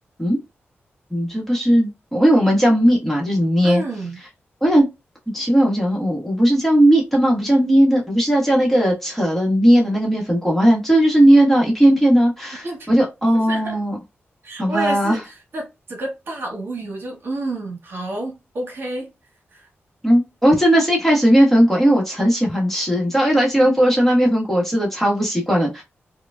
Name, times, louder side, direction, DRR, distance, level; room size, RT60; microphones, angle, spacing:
voice 1, 1.1-3.8 4.6-4.9 5.3-14.0 14.6-15.2 20.0-25.8, equal, 5° left, 1.3 m, -17 dB
voice 2, 3.6-4.2 12.6-13.0 13.5-13.8 14.4-19.1 19.5-19.7, right 2 dB, 55° right, 1.3 m, -29 dB
4.9 x 2.3 x 2.2 m
wide cardioid pair, 155°, 4 cm